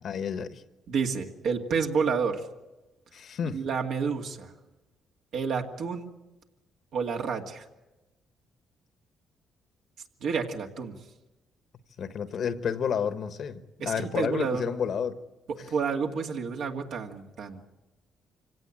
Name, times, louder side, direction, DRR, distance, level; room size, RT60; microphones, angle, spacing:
voice 1, 0.0-0.6 3.1-3.6 12.0-15.2, left 7 dB, 60° left, 1.2 m, -30 dB
voice 2, 0.9-2.4 3.5-4.5 5.3-6.1 6.9-7.6 10.2-11.0 13.8-14.7 15.6-17.6, right 5 dB, 75° right, 2.1 m, -29 dB
25.0 x 17.0 x 8.9 m
cardioid pair, 90°, 0 cm